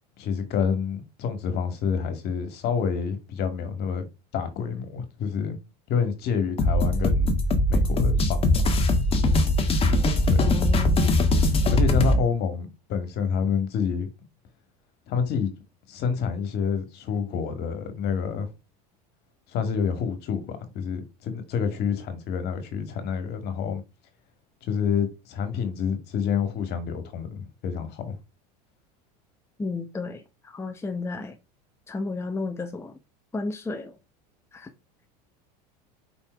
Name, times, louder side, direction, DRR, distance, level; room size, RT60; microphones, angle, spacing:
voice 1, 0.2-4.0 4.3-5.6 5.9-7.3 7.7-8.5 10.2-10.4 11.7-14.1 15.1-15.5 15.9-18.5 19.5-23.8 24.6-28.2, left 6 dB, 55° left, 2.1 m, -28 dB
sound 1, 6.6-12.2, left 1 dB, 30° left, 1.5 m, -21 dB
voice 2, 10.4-11.1 29.6-31.4 31.9-33.0 33.3-34.0 34.5-34.7, left 3 dB, 15° left, 0.9 m, -33 dB
5.3 x 4.5 x 4.6 m
supercardioid pair, 110°, 21 cm